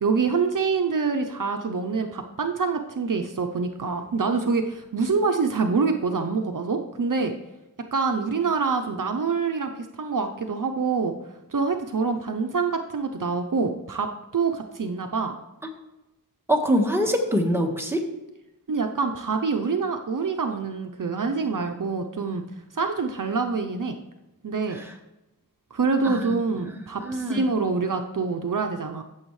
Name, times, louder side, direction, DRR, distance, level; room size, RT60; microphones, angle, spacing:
voice 1, 0.0-7.3 7.9-9.7 10.0-11.1 11.5-15.4 18.7-22.4 22.7-24.0 24.4-24.8 25.7-29.0, right 4 dB, 65° right, 5 dB, 0.7 m, -26 dB
voice 2, 16.5-18.0 24.7-24.8 26.0-26.3 27.0-27.5, equal, 5° right, 1 dB, 1.5 m, -24 dB
14.5 x 7.1 x 3.2 m, 0.97 s
wide cardioid pair, 80°, 35 cm